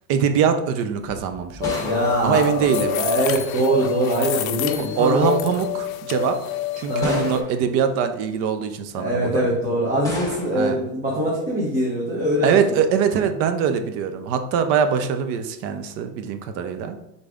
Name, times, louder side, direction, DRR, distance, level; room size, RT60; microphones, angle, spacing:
voice 1, 0.1-1.8 2.2-2.9 5.0-6.4 6.8-9.5 10.5-10.8 12.4-17.0, right 7 dB, 35° right, 8 dB, 0.4 m, -22 dB
sound 1, 1.0-3.4 4.4-4.9 5.7-5.8 7.0-7.8 10.0-10.8, equal, 10° left, 1.2 m, -33 dB
sound 2, 1.6-7.4, left 14 dB, 70° left, 0.6 m, -28 dB
voice 2, 1.8-5.3 6.9-7.3 8.9-12.8, right 1 dB, 20° right, -4 dB, 0.9 m, -23 dB
3.9 x 3.2 x 3.5 m, 0.83 s
supercardioid pair, 125°, 43 cm